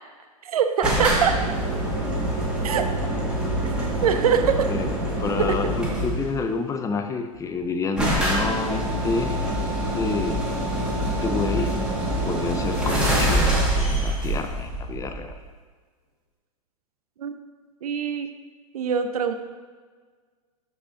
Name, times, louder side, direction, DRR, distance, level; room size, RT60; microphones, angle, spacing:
voice 1, 0.4-1.4 2.6-2.8 3.8-4.7 5.4-5.6 17.2-17.3 17.8-18.4 18.7-19.3, right 7 dB, 80° right, 9 dB, 0.6 m, -23 dB
sound 1, 0.8-6.3 7.3-7.4 7.6-7.7 8.0-15.5, right 1 dB, 5° right, 1.8 m, -25 dB
voice 2, 4.7-9.4 9.9-10.5 11.0-11.9 12.2-15.4, left 4 dB, 15° left, 7 dB, 0.6 m, -29 dB
6.4 x 5.5 x 4.0 m, 1.5 s
hypercardioid pair, 105°, 19 cm